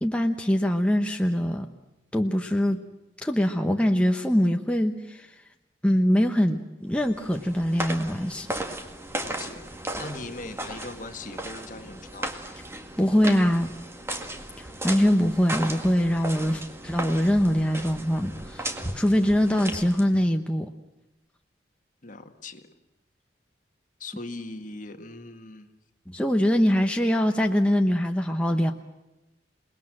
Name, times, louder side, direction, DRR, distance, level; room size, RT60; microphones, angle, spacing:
voice 1, 0.0-1.7 2.1-2.8 3.2-5.3 5.8-8.5 13.0-13.7 14.8-20.7 26.1-28.7, equal, 5° left, 3 dB, 1.0 m, -23 dB
sound 1, 6.9-20.2, right 1 dB, 15° right, 1.9 m, -36 dB
voice 2, 9.2-9.7 10.0-12.3 22.0-22.7 24.0-25.7, left 2 dB, 45° left, 6 dB, 1.9 m, -40 dB
28.5 x 20.5 x 7.7 m, 0.99 s
head